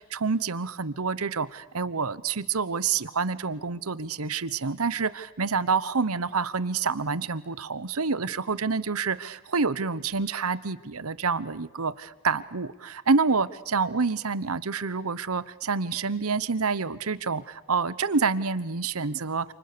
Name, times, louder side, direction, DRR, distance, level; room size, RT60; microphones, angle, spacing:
voice 1, 0.0-19.5, right 4 dB, 80° right, 17 dB, 1.0 m, -28 dB
29.0 x 28.0 x 6.8 m, 1.1 s
head